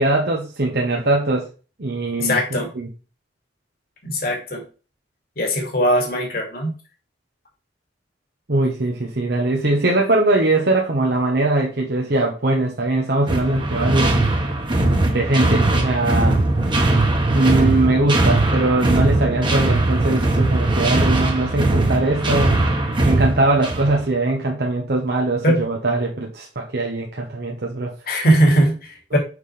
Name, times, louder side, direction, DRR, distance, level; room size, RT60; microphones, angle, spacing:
voice 1, 0.0-1.5 1.8-2.9 8.5-14.1 15.1-16.4 17.3-22.6 23.0-27.9 29.1-29.2, right 2 dB, 65° right, 0 dB, 1.1 m, -21 dB
voice 2, 2.2-2.7 4.0-4.6 5.4-6.7 25.4-25.6 28.1-29.2, equal, 60° left, 1 dB, 2.2 m, -19 dB
sound 1, 13.3-24.0, right 2 dB, 30° right, 1.4 m, -19 dB
6.5 x 5.5 x 3.3 m, 0.34 s
head